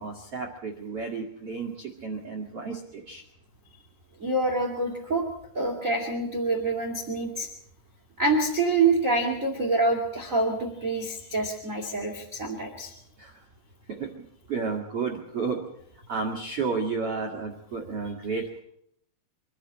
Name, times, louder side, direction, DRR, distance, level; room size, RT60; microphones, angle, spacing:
voice 1, 0.0-3.2 13.2-13.4 13.9-14.1 14.5-15.6 16.1-18.6, right 4 dB, 65° right, 0 dB, 1.5 m, -32 dB
voice 2, 4.2-5.2 5.5-7.5 8.2-12.9, right 3 dB, 30° right, 3 dB, 1.5 m, -26 dB
25.5 x 12.0 x 8.7 m, 0.72 s
omnidirectional pair, 5.8 m